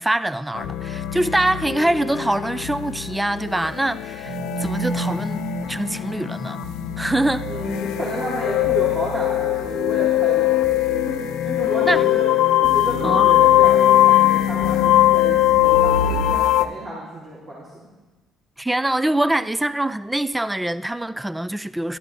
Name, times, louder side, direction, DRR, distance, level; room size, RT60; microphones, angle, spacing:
voice 1, 0.0-5.4 5.7-6.6 7.0-7.4 11.8-12.0 13.0-13.5 18.6-22.0, right 1 dB, 10° right, 0.4 m, -24 dB
sound 1, 0.5-16.7, left 13 dB, 75° left, 0.5 m, -20 dB
sound 2, 4.2-16.3, right 1 dB, 90° right, 1.8 m, -33 dB
voice 2, 7.5-10.5 11.1-12.3 12.6-17.9, equal, 50° right, 3.7 m, -31 dB
13.0 x 11.0 x 3.6 m
hypercardioid pair, 55°, 0 cm